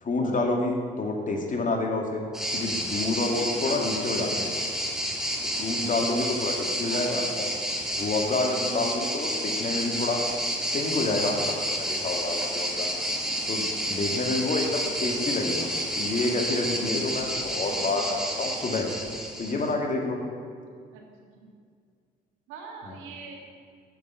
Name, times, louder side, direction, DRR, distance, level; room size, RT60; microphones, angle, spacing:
voice 1, 0.0-2.2 2.5-4.5 5.5-7.5 8.0-10.2 10.7-12.9 13.5-15.7 16.0-18.9 19.4-20.2 22.9-23.0, left 2 dB, 40° left, 2 dB, 1.8 m, -28 dB
sound 1, 2.3-19.7, equal, ahead, 1.6 m, -30 dB
voice 2, 4.0-4.4 6.9-7.3 15.1-15.5 17.6-18.1 20.9-21.0 21.3-21.5 22.5-23.3, right 5 dB, 85° right, 1 dB, 1.5 m, -44 dB
7.0 x 6.2 x 7.1 m, 2.1 s
supercardioid pair, 60°, 20 cm